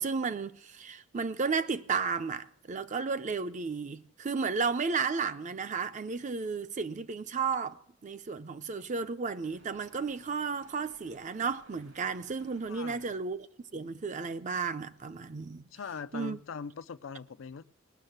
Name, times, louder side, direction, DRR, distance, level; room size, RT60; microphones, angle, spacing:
voice 1, 0.0-13.5 13.7-15.7 16.1-16.4, right 5 dB, 40° right, 0.5 m, -33 dB
sound 1, 9.4-13.1, right 2 dB, 80° right, 2.3 m, -60 dB
voice 2, 12.7-13.1 15.7-17.6, left 6 dB, 75° left, 0.5 m, -41 dB
19.5 x 6.5 x 7.8 m
head